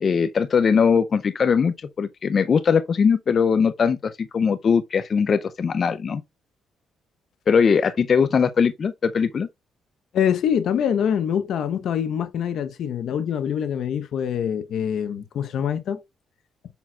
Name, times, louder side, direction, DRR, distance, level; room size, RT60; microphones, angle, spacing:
voice 1, 0.0-6.2 7.5-9.5, left 6 dB, 45° left, 0.5 m, -20 dB
voice 2, 10.1-16.0, left 8 dB, 70° left, 0.8 m, -24 dB
7.1 x 5.9 x 2.3 m
cardioid pair, 90°, 0 cm